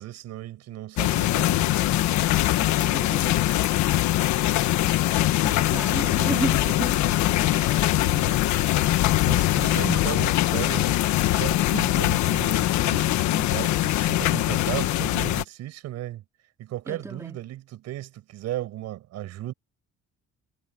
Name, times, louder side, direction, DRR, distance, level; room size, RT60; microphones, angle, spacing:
voice 1, 0.0-1.8 5.9-6.4 8.1-8.4 8.8-10.9 11.4-16.2 16.6-19.5, right 14 dB, 65° right, 6.7 m, -35 dB
sound 1, 1.0-15.4, left 15 dB, 70° left, 1.4 m, -22 dB
voice 2, 2.6-3.6 4.0-4.4 4.7-8.4 16.9-17.4, right 2 dB, 10° right, 3.2 m, -35 dB
cardioid pair, 180°, 29 cm